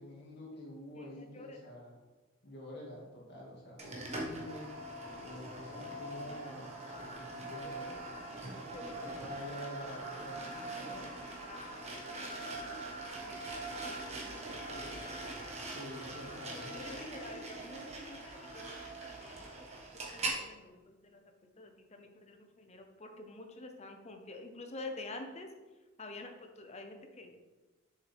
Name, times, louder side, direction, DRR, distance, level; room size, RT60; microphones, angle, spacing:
voice 1, 0.0-1.9 2.4-4.7 5.2-11.1 15.7-16.8, left 1 dB, 55° left, -4 dB, 2.3 m, -48 dB
voice 2, 0.9-1.7 8.7-9.0 10.4-15.2 16.0-16.1 16.4-25.5 26.0-27.4, left 2 dB, 35° left, 4 dB, 0.9 m, -49 dB
sound 1, 3.8-20.4, right 2 dB, 35° right, 1.3 m, -42 dB
7.0 x 6.0 x 3.6 m, 1.2 s
head